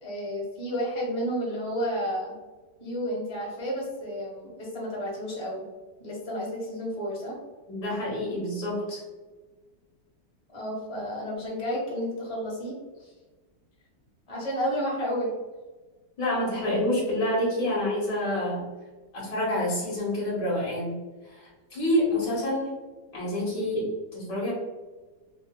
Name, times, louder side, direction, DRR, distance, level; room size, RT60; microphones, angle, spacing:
voice 1, 0.0-2.3 2.8-5.6 6.0-7.4 10.5-13.1 14.3-15.3, equal, 20° left, -4 dB, 1.2 m, -31 dB
voice 2, 7.7-9.0 16.2-18.7 19.1-21.0 21.3-22.8 23.1-24.5, left 1 dB, 75° left, -5 dB, 2.2 m, -28 dB
5.3 x 2.9 x 2.2 m, 1.3 s
omnidirectional pair, 1.9 m